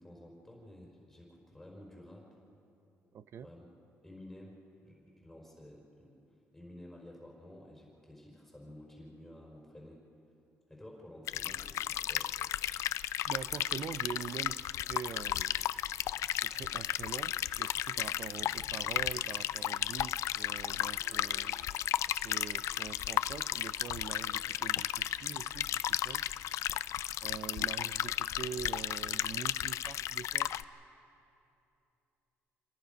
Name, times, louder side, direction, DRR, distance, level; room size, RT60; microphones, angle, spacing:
voice 1, 0.0-2.4 3.4-3.7 4.0-6.2 6.5-10.0 10.7-12.3, left 1 dB, 5° left, -2 dB, 4.3 m, -52 dB
voice 2, 3.1-3.5 13.2-15.6 16.3-21.6 22.1-26.3 27.2-30.5, right 8 dB, 60° right, 15 dB, 0.6 m, -44 dB
sound 1, 11.3-30.6, left 12 dB, 75° left, 0.4 m, -34 dB
Guitar, 18.4-19.6 20.9-21.8 22.1-23.3 23.9-27.3, right 3 dB, 85° right, 3.7 m, -64 dB
27.0 x 19.0 x 5.2 m, 2.8 s
cardioid pair, 95°, 5 cm